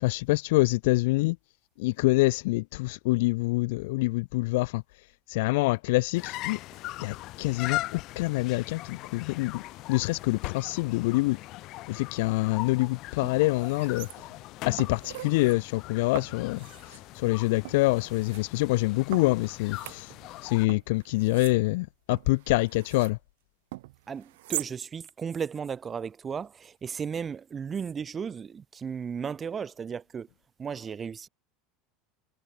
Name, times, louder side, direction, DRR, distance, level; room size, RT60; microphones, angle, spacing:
voice 1, 0.0-1.4 1.8-4.8 5.3-6.6 7.0-9.6 9.9-11.4 11.9-14.1 14.6-20.1 20.4-23.2, left 22 dB, 75° left, 0.7 m, -26 dB
sound 1, 6.1-20.7, left 18 dB, 55° left, 3.6 m, -40 dB
sound 2, 12.7-12.8 13.2-14.4 14.8-15.6 16.1-17.0 17.6-18.4 19.1-20.4 20.7-23.2 23.7-24.7 25.1-25.2, right 19 dB, 85° right, 0.7 m, -42 dB
voice 2, 24.1-30.3 30.6-31.3, right 6 dB, 25° right, 1.1 m, -35 dB
supercardioid pair, 120°, 0 cm